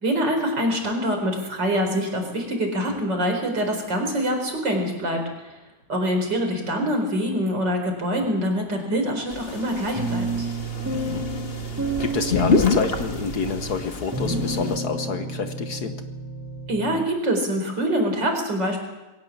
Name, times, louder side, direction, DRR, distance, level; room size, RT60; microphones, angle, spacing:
voice 1, 0.0-5.2 5.9-10.5 16.7-18.8, equal, 80° right, 4 dB, 5.0 m, -25 dB
sound 1, 9.3-14.8, left 4 dB, 35° left, 1.7 m, -27 dB
sound 2, 9.9-17.0, right 3 dB, 10° right, 3.1 m, -30 dB
voice 2, 10.9-11.2 12.0-15.9, left 5 dB, 65° left, 8 dB, 1.6 m, -28 dB
22.0 x 18.0 x 7.2 m, 1.1 s
omnidirectional pair, 1.9 m